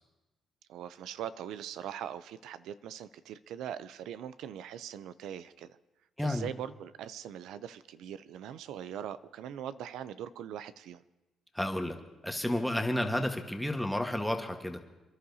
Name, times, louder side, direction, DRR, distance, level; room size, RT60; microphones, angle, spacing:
voice 1, 0.7-5.7 6.2-11.0, right 10 dB, 85° right, 14 dB, 0.4 m, -41 dB
voice 2, 6.2-6.5 11.5-12.0 12.2-14.8, left 1 dB, 5° left, 4 dB, 1.3 m, -31 dB
27.5 x 11.5 x 2.7 m, 1.0 s
cardioid pair, 90°, 0 cm